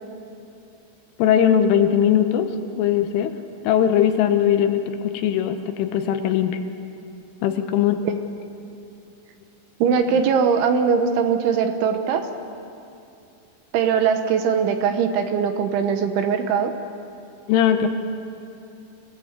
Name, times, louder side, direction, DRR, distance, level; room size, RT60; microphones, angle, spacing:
voice 1, 1.2-2.5 2.8-3.3 3.6-6.6 7.4-8.0 17.5-17.9, left 9 dB, 75° left, 7 dB, 3.4 m, -19 dB
voice 2, 9.8-12.2 13.7-16.7, right 6 dB, 75° right, 6 dB, 3.2 m, -21 dB
26.5 x 17.5 x 8.2 m, 2.6 s
omnidirectional pair, 5.9 m